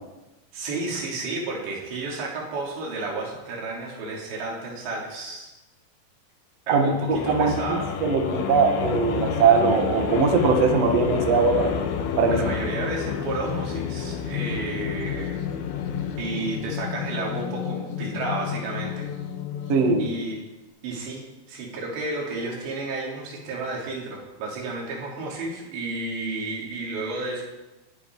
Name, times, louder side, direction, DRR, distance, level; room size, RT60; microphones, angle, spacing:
voice 1, 0.5-5.5 6.7-7.9 12.3-15.4 16.2-19.1 20.0-20.5 20.8-27.4, right 2 dB, 65° right, -2 dB, 5.2 m, -32 dB
voice 2, 6.7-11.7 12.2-12.4 19.7-20.1, right 4 dB, 80° right, 4 dB, 1.4 m, -21 dB
sound 1, 7.0-20.3, left 7 dB, 85° left, 3.7 m, -30 dB
19.0 x 10.5 x 4.7 m, 1.0 s
omnidirectional pair, 5.5 m